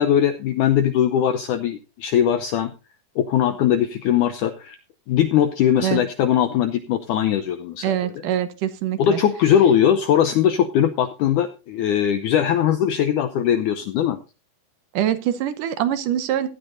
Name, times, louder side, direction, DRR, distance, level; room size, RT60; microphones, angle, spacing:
voice 1, 0.0-2.7 3.2-4.8 5.1-8.1 9.0-14.2, left 9 dB, 80° left, 10 dB, 1.7 m, -20 dB
voice 2, 7.8-9.2 14.9-16.5, right 11 dB, 70° right, 12 dB, 2.2 m, -24 dB
16.0 x 12.0 x 2.6 m, 0.30 s
omnidirectional pair, 4.6 m